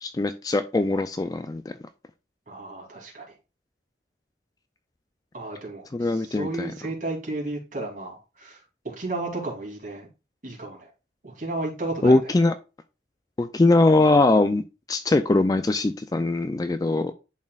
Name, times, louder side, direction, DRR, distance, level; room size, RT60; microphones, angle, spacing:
voice 1, 0.0-1.6 5.9-6.7 12.0-12.5 13.4-14.6 14.9-17.1, left 2 dB, 20° left, 10 dB, 0.3 m, -21 dB
voice 2, 2.5-3.2 5.3-10.1 10.4-10.9 11.2-12.3, right 2 dB, 45° right, -1 dB, 2.7 m, -33 dB
10.5 x 4.4 x 2.3 m, 0.29 s
head